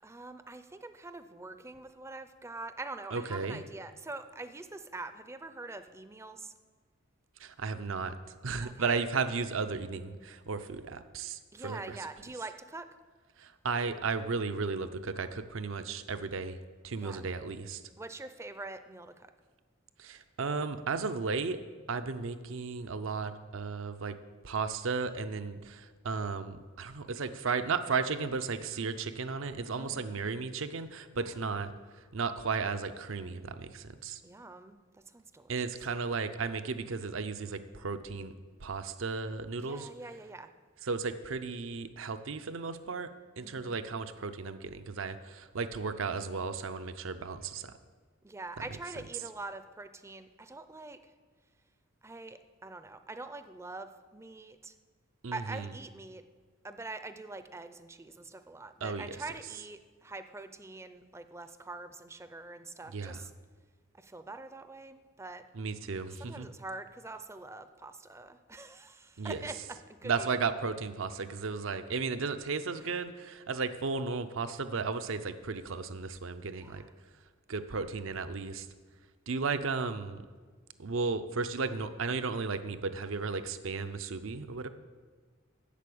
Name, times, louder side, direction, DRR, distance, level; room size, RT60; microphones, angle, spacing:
voice 1, 0.0-6.5 8.6-9.0 11.5-12.9 17.0-17.3 18.0-19.3 29.8-30.2 31.1-31.4 34.2-35.7 39.6-40.5 43.4-43.8 48.2-51.1 52.0-54.7 55.3-56.3 56.6-63.3 63.9-65.4 66.2-69.5 69.9-70.3 72.8-72.9 76.6-76.9, right 2 dB, 15° right, 10 dB, 0.5 m, -44 dB
voice 2, 3.1-3.6 7.4-8.2 8.4-12.0 13.4-16.6 16.8-17.8 20.0-21.6 21.9-24.1 24.4-34.2 35.5-38.3 38.6-39.9 40.8-43.1 43.4-47.8 55.2-55.7 58.8-59.2 62.9-63.2 65.5-66.5 69.2-69.4 70.0-76.8 77.5-78.7 79.3-80.2 80.8-84.7, right 4 dB, 70° right, 10 dB, 0.6 m, -34 dB
8.3 x 6.8 x 8.5 m, 1.5 s
head